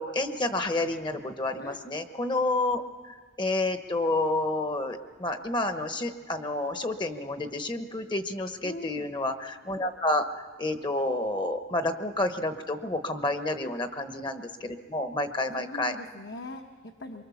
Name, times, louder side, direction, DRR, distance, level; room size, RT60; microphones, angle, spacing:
voice 1, 0.0-10.2 10.6-15.9, left 2 dB, 25° left, 8 dB, 0.9 m, -29 dB
voice 2, 8.6-9.1 13.6-13.9 15.5-17.2, left 2 dB, 60° left, 3 dB, 1.1 m, -42 dB
24.0 x 23.5 x 7.1 m, 1.5 s
head